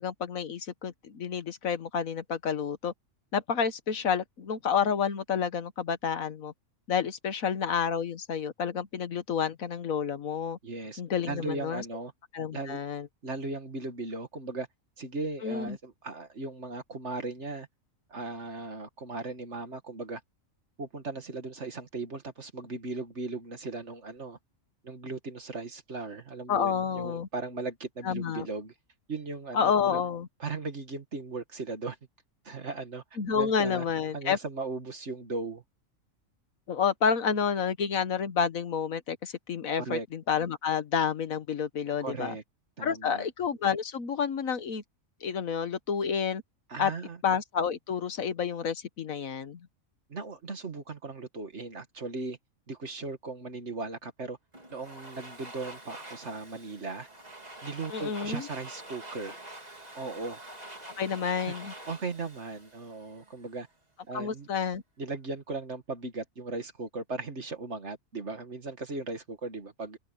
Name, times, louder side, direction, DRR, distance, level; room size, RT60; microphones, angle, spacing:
voice 1, 0.0-2.9 3.3-6.5 6.9-10.6 11.0-11.8 12.3-13.1 15.4-15.8 26.5-27.3 28.0-28.5 29.5-30.3 33.2-34.4 36.7-42.4 42.8-44.8 45.2-46.4 46.8-46.9 47.2-49.6 57.9-58.5 61.0-61.7 64.1-64.8, left 7 dB, 80° left, 1.7 m, -29 dB
voice 2, 10.6-11.0 11.3-12.1 12.5-12.8 13.2-14.7 15.0-17.7 18.1-20.2 20.8-24.4 24.8-28.7 29.1-30.1 30.4-32.0 32.4-33.0 33.3-33.9 34.1-35.6 39.8-40.1 42.0-42.4 42.8-43.3 46.7-47.2 50.1-52.4 52.7-54.4 54.7-57.1 57.6-59.4 59.9-60.4 61.9-63.7 64.1-64.5 65.0-70.0, right 3 dB, 55° right, 2.3 m, -37 dB
Domestic sounds home sounds, 54.5-63.5, right 1 dB, 30° right, 3.9 m, -46 dB
omnidirectional pair, 1.4 m